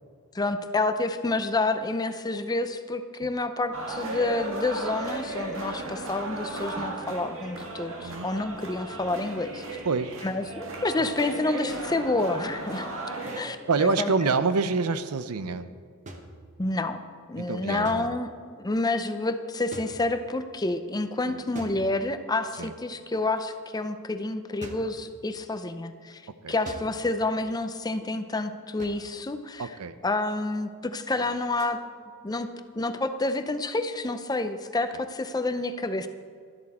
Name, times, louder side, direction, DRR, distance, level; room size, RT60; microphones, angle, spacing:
voice 1, 0.3-9.6 10.2-12.9 13.3-14.1 16.6-17.0 17.3-18.3 18.6-26.2 26.5-29.8 30.0-31.8 32.2-32.5 32.7-36.1, left 2 dB, 15° left, 9 dB, 0.5 m, -29 dB
sound 1, 3.7-13.4, right 2 dB, 60° right, 1.7 m, -36 dB
voice 2, 9.8-10.2 11.0-11.1 13.7-15.7 17.4-18.1 21.3-21.4 22.6-22.7 26.4-26.5 29.6-29.9, right 4 dB, 90° right, 12 dB, 0.7 m, -27 dB
sound 2, 13.3-13.5 16.1-16.9 17.8-18.5 19.7-20.5 21.5-22.4 24.6-25.0 26.6-27.2 28.8-29.2 31.6-31.8, right 1 dB, 35° right, 1.0 m, -44 dB
12.5 x 12.0 x 4.2 m, 2.1 s
head